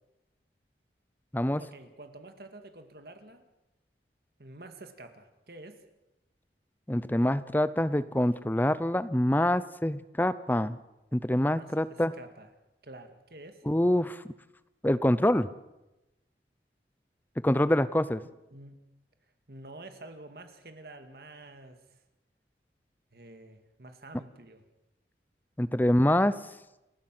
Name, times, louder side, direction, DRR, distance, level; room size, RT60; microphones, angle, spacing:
voice 1, 1.6-3.4 4.4-5.8 11.5-12.5 12.8-13.6 18.5-18.8 19.5-22.0 23.1-24.6, right 2 dB, 60° right, 7 dB, 2.0 m, -48 dB
voice 2, 6.9-10.8 11.1-12.1 13.7-14.2 14.8-15.5 17.4-18.2 25.6-26.3, left 1 dB, 10° left, 14 dB, 0.7 m, -25 dB
29.0 x 12.5 x 7.6 m, 0.97 s
head